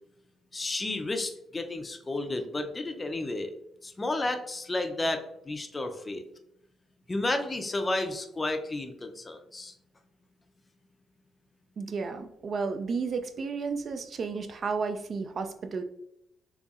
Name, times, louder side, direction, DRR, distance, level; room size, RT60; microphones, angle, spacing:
voice 1, 0.5-3.5 3.8-6.2 7.1-9.7, left 2 dB, 25° left, 6 dB, 0.4 m, -32 dB
voice 2, 11.8-15.8, right 4 dB, 50° right, 8 dB, 0.3 m, -32 dB
4.0 x 2.8 x 2.4 m, 0.79 s
cardioid pair, 90°, 0 cm